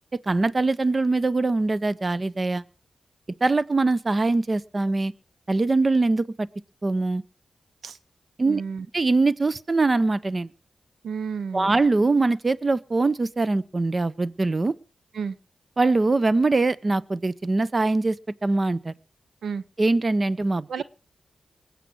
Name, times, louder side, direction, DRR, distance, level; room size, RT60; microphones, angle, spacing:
voice 1, 0.3-2.6 3.4-5.1 5.5-6.5 6.8-7.2 8.4-8.6 8.9-10.5 11.5-14.7 15.8-18.2 18.4-18.9 19.8-20.7, right 3 dB, 40° right, 0.8 m, -22 dB
voice 2, 8.4-8.9 11.0-11.8 15.1-15.4 19.4-19.6 20.7-20.8, right 6 dB, 90° right, 0.7 m, -31 dB
20.5 x 8.3 x 6.0 m
cardioid pair, 45°, 0 cm